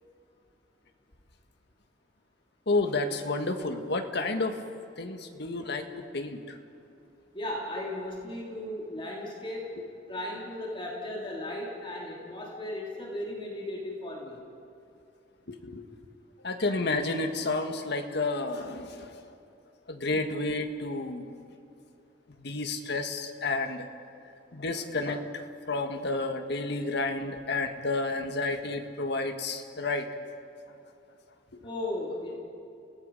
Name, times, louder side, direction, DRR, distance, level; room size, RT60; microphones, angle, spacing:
voice 1, 2.7-4.5 5.0-5.8 6.1-6.4 15.5-15.8 16.4-19.2 19.9-21.2 22.4-23.9 24.5-25.2 25.7-30.0, left 3 dB, 65° left, 5 dB, 1.7 m, -30 dB
voice 2, 7.3-14.4 31.6-32.4, left 1 dB, 30° left, -3 dB, 3.3 m, -36 dB
29.5 x 17.5 x 5.5 m, 2.6 s
head